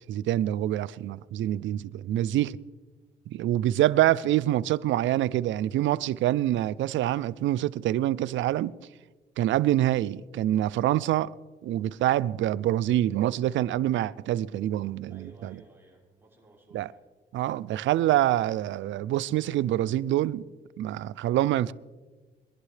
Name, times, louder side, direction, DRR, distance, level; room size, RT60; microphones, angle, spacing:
voice 1, 0.1-2.6 3.3-8.7 9.4-11.3 11.6-15.6 16.7-16.9 17.3-20.5 20.8-21.7, right 13 dB, 70° right, 0.4 m, -26 dB
voice 2, 15.1-17.0, right 2 dB, 10° right, 5.4 m, -55 dB
22.5 x 11.0 x 3.3 m
cardioid pair, 90°, 20 cm